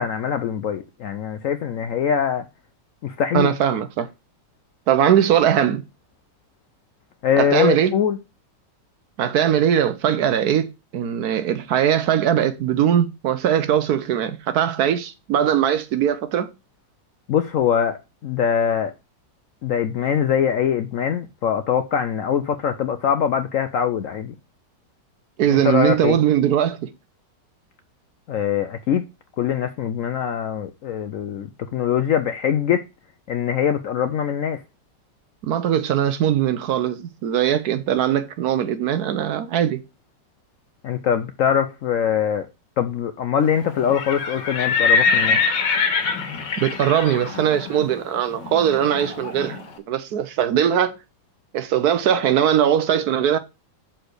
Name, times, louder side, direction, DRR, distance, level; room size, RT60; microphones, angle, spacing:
voice 1, 0.0-2.5 3.0-3.5 7.2-8.2 17.3-18.9 19.6-24.3 25.5-26.2 28.3-29.0 29.4-32.8 33.3-34.6 40.8-42.5 42.8-45.4, left 8 dB, 70° left, 0.8 m, -23 dB
voice 2, 3.3-4.1 4.9-5.8 7.4-7.9 9.2-16.5 25.4-26.9 35.4-39.8 46.6-51.0 51.5-53.4, right 9 dB, 65° right, 1.1 m, -20 dB
Livestock farm animals working animals, 43.8-49.6, left 5 dB, 90° left, 2.0 m, -23 dB
6.6 x 4.4 x 6.4 m
omnidirectional pair, 1.9 m